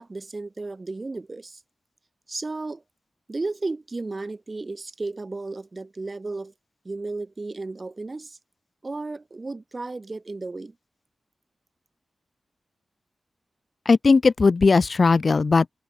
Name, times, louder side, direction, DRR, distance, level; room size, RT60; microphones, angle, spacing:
voice 1, 0.0-1.6 2.3-2.8 3.3-6.5 6.8-8.4 8.8-10.7, right 3 dB, 30° right, 0.9 m, -34 dB
voice 2, 13.9-15.7, left 4 dB, 45° left, 0.6 m, -18 dB
wide cardioid pair, 140°, 0 cm